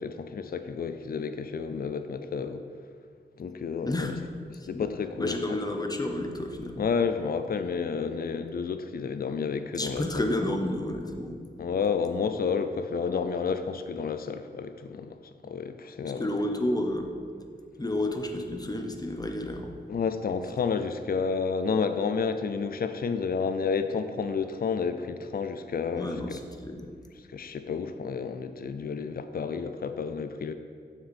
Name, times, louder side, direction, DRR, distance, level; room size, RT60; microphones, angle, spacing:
voice 1, 0.0-2.6 3.4-4.2 4.5-5.6 6.8-10.2 11.6-15.2 15.4-16.3 19.9-26.4 27.3-30.5, left 5 dB, 60° left, 10 dB, 0.4 m, -30 dB
voice 2, 3.9-4.2 4.7-4.9 5.2-6.8 9.8-11.4 16.2-17.1 17.8-19.7 25.9-26.9, left 1 dB, 20° left, 3 dB, 0.8 m, -31 dB
7.2 x 6.1 x 4.3 m, 2.2 s
wide cardioid pair, 75°, 18 cm